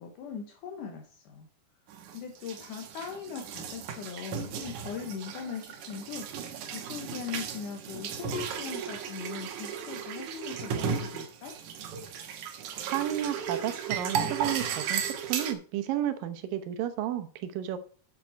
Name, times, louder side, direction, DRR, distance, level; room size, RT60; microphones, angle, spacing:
voice 1, 0.0-1.5 2.1-11.5, left 6 dB, 75° left, 3 dB, 2.7 m, -40 dB
sound 1, 1.9-15.5, right 7 dB, 70° right, 2.4 m, -35 dB
voice 2, 12.9-17.8, right 11 dB, 85° right, 9 dB, 2.6 m, -32 dB
8.4 x 7.0 x 4.5 m, 0.42 s
omnidirectional pair, 3.9 m